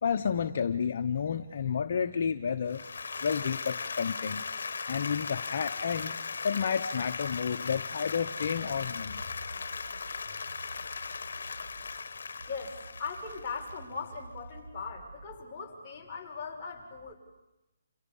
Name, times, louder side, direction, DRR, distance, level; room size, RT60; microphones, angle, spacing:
voice 1, 0.0-2.8 3.2-4.4 4.9-6.2 6.4-9.2, left 7 dB, 55° left, 5 dB, 1.1 m, -31 dB
Applause, 2.7-14.0, left 5 dB, 75° left, 1.3 m, -38 dB
sound 1, 9.0-12.0 12.4-15.4, right 2 dB, 75° right, 3.2 m, -50 dB
voice 2, 12.4-17.1, left 4 dB, 15° left, -5 dB, 6.6 m, -39 dB
29.0 x 28.5 x 5.6 m, 0.98 s
hypercardioid pair, 160°, 0 cm